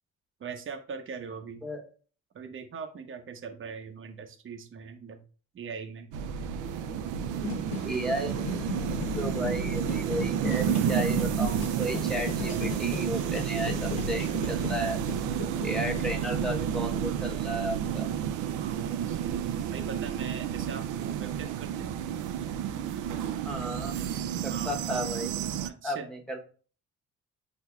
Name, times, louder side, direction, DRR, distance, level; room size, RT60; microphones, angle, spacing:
voice 1, 0.4-1.6 2.3-5.2 5.5-6.1 18.6-19.4 19.7-22.0 24.5-24.7 25.6-26.1, right 6 dB, 40° right, 6 dB, 0.8 m, -41 dB
sound 1, 6.1-25.7, right 8 dB, 90° right, 0.5 m, -31 dB
sound 2, 7.4-17.5, left 3 dB, 70° left, 1.1 m, -38 dB
voice 2, 7.8-15.0 15.6-18.1 23.4-24.0 24.4-25.3 25.8-26.4, equal, ahead, 1 dB, 1.3 m, -34 dB
7.9 x 2.8 x 2.3 m, 0.39 s
cardioid pair, 90°, 30 cm